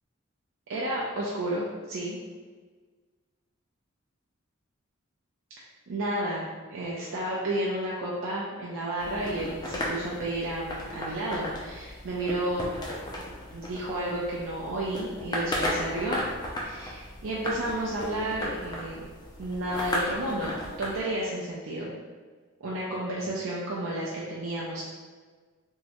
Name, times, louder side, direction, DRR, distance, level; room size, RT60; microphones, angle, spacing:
voice 1, 0.7-2.2 5.9-12.7 13.5-16.2 16.6-19.0 19.4-20.5 20.8-21.9 22.6-24.8, right 1 dB, 65° right, -5 dB, 0.4 m, -31 dB
sound 1, 9.0-21.0, left 1 dB, 20° left, 0.4 m, -35 dB
3.5 x 2.1 x 2.9 m, 1.4 s
head